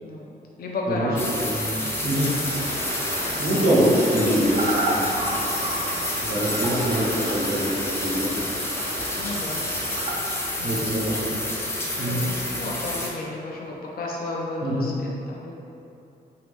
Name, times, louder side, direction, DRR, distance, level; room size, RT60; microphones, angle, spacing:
voice 1, 0.0-1.9 2.5-3.5 5.6-6.4 9.2-9.6 10.6-11.5 12.0-15.6, left 2 dB, 70° left, -3 dB, 0.5 m, -34 dB
sound 1, 1.2-13.1, left 1 dB, 15° left, 0.4 m, -29 dB
voice 2, 1.5-2.3 3.4-5.1 6.2-8.3 10.6-11.2 12.0-12.3 14.6-14.9, right 1 dB, 70° right, -8 dB, 1.0 m, -24 dB
sound 2, 2.1-10.1, right 1 dB, 40° right, 0.5 m, -32 dB
2.8 x 2.5 x 3.5 m, 2.8 s
wide cardioid pair, 150°, 16 cm